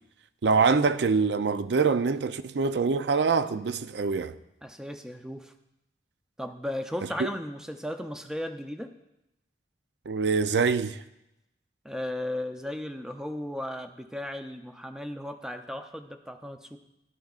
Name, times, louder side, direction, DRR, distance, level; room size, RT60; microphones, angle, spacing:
voice 1, 0.4-4.4 7.2-7.3 10.1-11.0, right 5 dB, 75° right, 0.5 m, -24 dB
voice 2, 4.6-5.5 6.4-8.9 11.8-16.8, left 1 dB, 5° right, 0.5 m, -35 dB
12.5 x 11.5 x 2.4 m
head